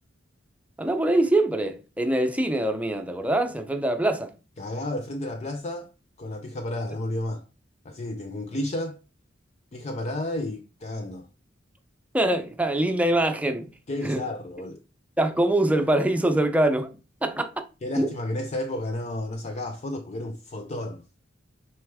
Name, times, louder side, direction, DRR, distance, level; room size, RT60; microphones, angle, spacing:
voice 1, 0.8-4.3 12.1-13.7 14.0-14.2 15.2-16.9 17.2-17.6 18.0-18.2, right 1 dB, 10° right, 0.7 m, -24 dB
voice 2, 4.6-5.9 6.2-7.4 7.8-9.0 9.7-11.3 13.9-14.8 17.8-21.0, left 1 dB, 35° left, 0.5 m, -32 dB
6.4 x 4.4 x 3.6 m
head